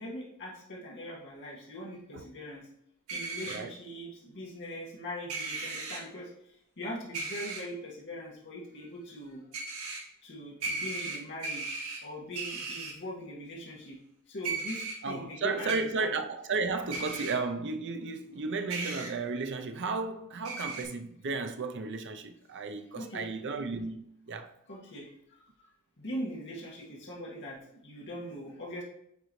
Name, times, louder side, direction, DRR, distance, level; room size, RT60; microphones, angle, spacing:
voice 1, 0.0-2.7 3.1-9.4 10.2-11.8 12.0-14.0 14.3-16.2 23.0-23.3 24.7-25.4 26.0-28.8, equal, 55° left, 1.8 m, -41 dB
sound 1, 3.1-3.6 5.3-6.0 7.1-7.6 9.5-10.0 10.6-12.0 12.3-12.9 14.4-14.9 15.7-15.8 16.9-17.3 18.7-19.1 20.4-20.8, right 3 dB, 75° right, 1.8 m, -36 dB
voice 2, 15.0-24.5, right 4 dB, 55° right, 0.6 m, -34 dB
9.3 x 4.0 x 3.1 m
head